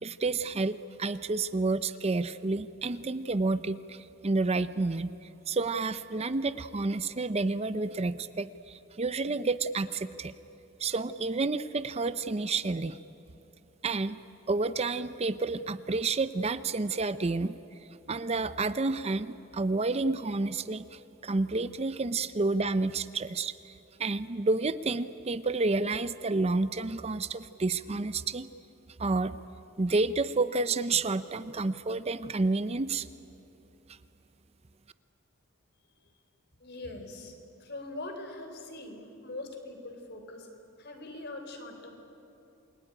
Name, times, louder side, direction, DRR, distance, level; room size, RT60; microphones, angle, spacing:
voice 1, 0.0-5.1 5.5-10.3 10.8-13.0 13.8-14.2 14.5-17.6 18.1-28.5 29.0-29.4 29.8-33.1 33.9-34.0, right 3 dB, 30° right, 13 dB, 0.5 m, -30 dB
voice 2, 36.6-40.5 40.8-41.9, left 2 dB, 50° left, 5 dB, 3.9 m, -42 dB
28.0 x 21.5 x 9.9 m, 2.8 s
head